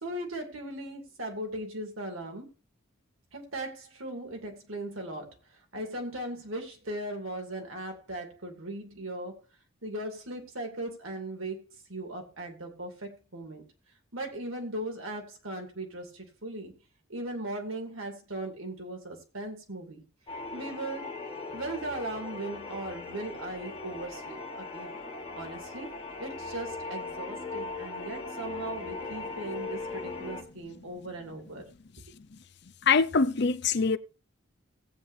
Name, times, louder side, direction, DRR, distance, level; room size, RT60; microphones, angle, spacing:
voice 1, 0.0-2.4 3.3-5.4 5.7-9.4 9.8-13.6 14.1-16.7 17.1-20.0 20.5-21.2 21.5-25.0 25.3-25.9 26.2-31.6, right 1 dB, 85° right, 2.7 m, -38 dB
sound 1, 20.3-30.4, left 3 dB, 25° left, 1.3 m, -39 dB
voice 2, 32.8-34.0, left 5 dB, 55° left, 0.6 m, -24 dB
17.5 x 8.4 x 2.7 m
head